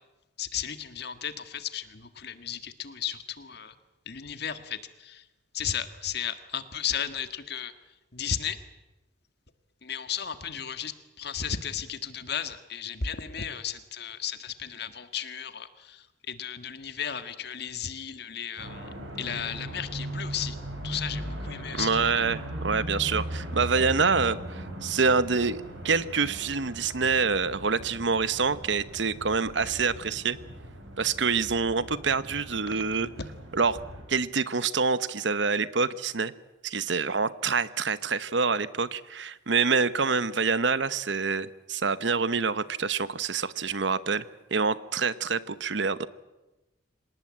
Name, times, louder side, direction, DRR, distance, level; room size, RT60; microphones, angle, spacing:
voice 1, 0.4-3.7 4.1-5.3 5.5-7.7 8.1-8.6 9.8-18.9 19.2-20.6 20.8-22.2, left 8 dB, 60° left, 10 dB, 1.7 m, -34 dB
sound 1, 18.6-34.0, right 1 dB, 85° right, 7.6 m, -38 dB
voice 2, 21.7-30.4 31.0-33.1 33.5-33.8 34.1-36.3 36.6-44.2 44.5-46.1, right 5 dB, 70° right, 15 dB, 1.0 m, -26 dB
26.5 x 19.0 x 8.8 m, 1.0 s
head